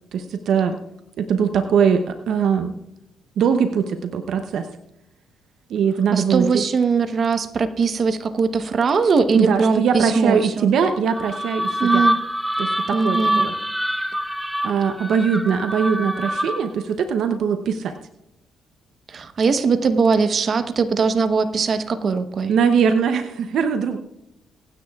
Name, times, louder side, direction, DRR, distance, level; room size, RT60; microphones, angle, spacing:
voice 1, 0.1-0.8 1.2-2.7 3.4-4.7 5.7-6.6 9.3-12.1 12.6-13.5 14.6-18.0 22.5-24.0, right 6 dB, 70° right, 8 dB, 0.7 m, -21 dB
voice 2, 6.1-10.7 11.8-12.2 12.9-13.4 19.1-22.5, right 5 dB, 45° right, 9 dB, 1.0 m, -20 dB
sound 1, 11.1-16.8, equal, 5° right, 0.7 m, -25 dB
24.0 x 9.6 x 2.4 m, 0.90 s
cardioid pair, 90°, 0 cm